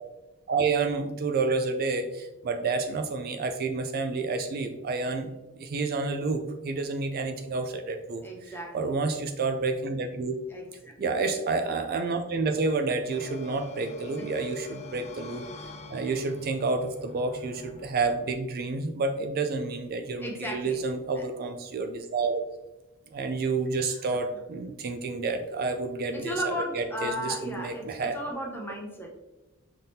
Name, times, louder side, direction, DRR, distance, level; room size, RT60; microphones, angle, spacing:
voice 1, 0.5-10.4 11.0-15.5 15.9-22.4 23.1-26.4 26.7-28.2, right 3 dB, 45° right, 6 dB, 0.3 m, -29 dB
voice 2, 8.2-8.9 10.5-10.9 14.2-14.3 20.2-20.8 21.2-21.3 24.1-24.2 26.1-29.1, equal, 10° left, 0 dB, 0.8 m, -35 dB
sound 1, 13.1-18.3, left 4 dB, 30° left, 0.4 m, -45 dB
5.5 x 3.5 x 2.7 m, 1.1 s
head